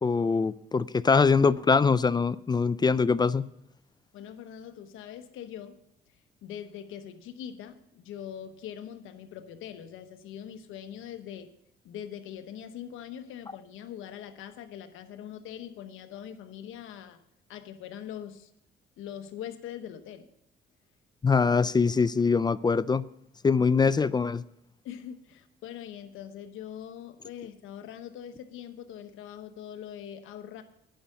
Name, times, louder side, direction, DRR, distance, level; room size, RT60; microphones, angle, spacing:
voice 1, 0.0-3.4 21.2-23.0 23.4-24.4, left 5 dB, 20° left, 0.3 m, -23 dB
voice 2, 4.1-5.8 6.4-11.5 11.8-17.2 17.5-18.5 19.0-20.3 24.8-30.6, left 9 dB, 85° left, 1.0 m, -42 dB
10.5 x 5.5 x 8.2 m
cardioid pair, 90°, 20 cm